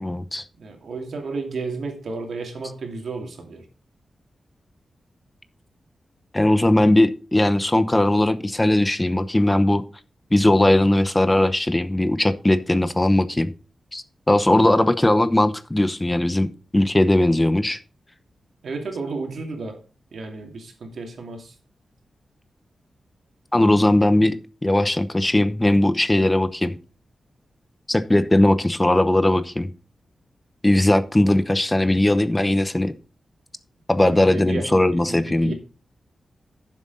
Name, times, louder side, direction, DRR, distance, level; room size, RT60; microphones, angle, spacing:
voice 1, 0.0-0.4 6.3-9.8 10.3-13.5 13.9-17.8 23.5-26.7 27.9-29.7 30.6-32.9 33.9-35.5, left 1 dB, 15° left, 0.8 m, -19 dB
voice 2, 0.6-3.7 18.6-19.8 20.1-21.6 34.0-35.5, right 3 dB, 75° right, 2.6 m, -32 dB
10.5 x 7.4 x 4.1 m
wide cardioid pair, 100°, 0 cm